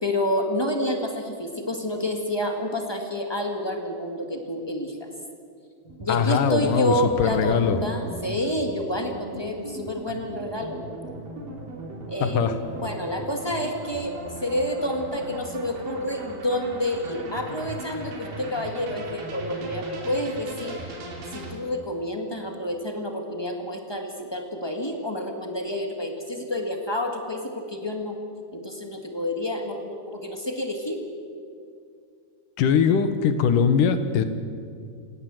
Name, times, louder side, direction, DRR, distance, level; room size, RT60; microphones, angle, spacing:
voice 1, 0.0-5.1 6.0-10.8 12.1-20.8 21.3-28.2 28.5-31.0, left 1 dB, 15° left, 3 dB, 0.8 m, -29 dB
sound 1, 5.8-21.6, right 1 dB, 65° right, 4.7 m, -39 dB
voice 2, 6.1-7.8 12.2-12.5 32.6-34.2, left 7 dB, 65° left, 10 dB, 2.6 m, -21 dB
27.5 x 17.5 x 7.8 m, 2.4 s
omnidirectional pair, 4.3 m